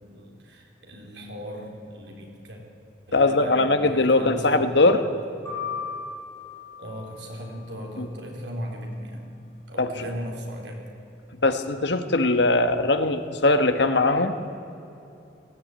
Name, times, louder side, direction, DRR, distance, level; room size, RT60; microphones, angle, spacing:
voice 1, 0.0-2.6 3.1-4.8 5.4-5.6 6.8-9.3 9.7-10.8, equal, 85° right, 1 dB, 4.0 m, -37 dB
voice 2, 3.1-5.0 8.0-8.1 9.8-10.0 11.4-14.3, left 2 dB, 75° left, 8 dB, 1.4 m, -21 dB
sound 1, 5.5-7.6, left 5 dB, 15° left, 5.6 m, -36 dB
18.5 x 16.0 x 8.9 m, 2.8 s
head